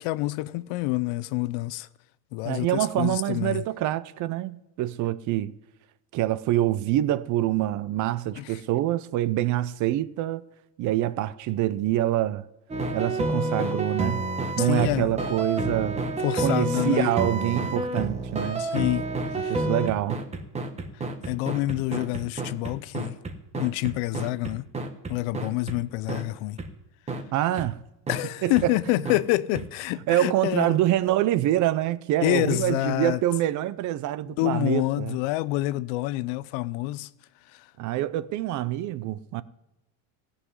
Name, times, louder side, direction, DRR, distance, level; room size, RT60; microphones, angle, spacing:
voice 1, 0.0-1.9 2.3-3.6 8.4-8.5 14.6-15.1 16.2-17.1 18.6-19.0 19.4-19.5 21.2-23.2 23.5-24.7 25.1-26.6 28.1-30.8 32.2-33.2 34.3-37.1 37.5-37.7, left 18 dB, 85° left, 0.7 m, -27 dB
voice 2, 2.4-5.5 6.1-10.4 10.8-12.5 12.9-14.3 14.6-16.0 16.4-18.6 19.5-20.2 27.3-27.8 28.4-28.7 30.1-35.2 37.8-39.4, right 14 dB, 40° right, 0.4 m, -26 dB
sound 1, 12.7-25.8 26.1-26.2 26.6-26.7 27.1-27.2 27.6-27.7 28.1-28.2 28.6-28.7 29.0-29.2 29.5-29.6, right 2 dB, 15° right, 1.0 m, -29 dB
16.0 x 5.7 x 9.7 m
cardioid pair, 175°, 46 cm